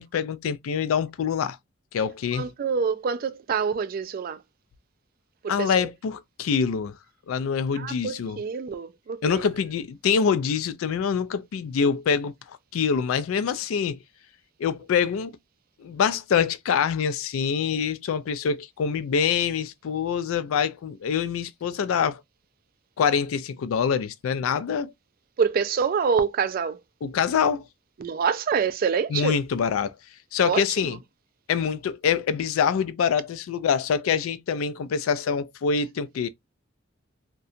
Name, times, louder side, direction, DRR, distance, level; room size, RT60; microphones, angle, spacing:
voice 1, 0.0-1.6 1.9-2.5 5.5-6.9 7.3-8.4 9.2-12.3 12.7-14.0 14.6-15.3 15.8-22.2 23.0-24.9 27.0-27.6 29.1-30.0 30.3-31.0 31.5-36.3, left 6 dB, 90° left, 0.3 m, -25 dB
voice 2, 2.3-4.4 5.4-5.9 7.7-9.5 25.4-26.8 28.0-29.4 30.4-30.6, right 6 dB, 45° right, 0.3 m, -26 dB
2.7 x 2.2 x 2.4 m
head